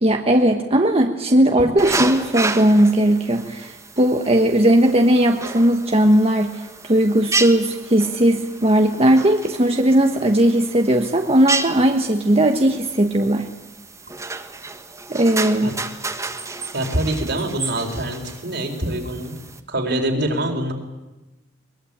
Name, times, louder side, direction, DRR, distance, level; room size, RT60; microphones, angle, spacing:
voice 1, 0.0-13.5 15.1-15.8, right 1 dB, 35° right, 4 dB, 1.3 m, -17 dB
sound 1, 1.8-19.6, right 3 dB, 15° right, 1.5 m, -31 dB
voice 2, 16.7-19.3 19.7-20.7, right 1 dB, 65° right, 3 dB, 4.3 m, -24 dB
23.0 x 21.5 x 8.9 m, 1.1 s
head